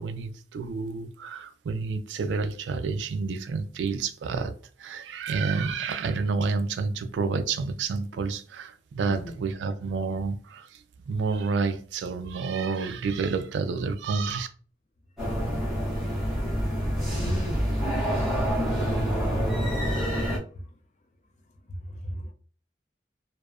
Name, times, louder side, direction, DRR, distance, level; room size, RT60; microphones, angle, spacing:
voice 1, 0.0-4.5 4.8-14.5, right 4 dB, 90° right, 0.3 m, -29 dB
voice 2, 9.1-9.4 17.1-17.7 20.5-20.7 21.7-22.3, equal, 40° left, 0.4 m, -34 dB
sound 1, 15.2-20.4, equal, ahead, 0.9 m, -27 dB
2.6 x 2.1 x 2.4 m
head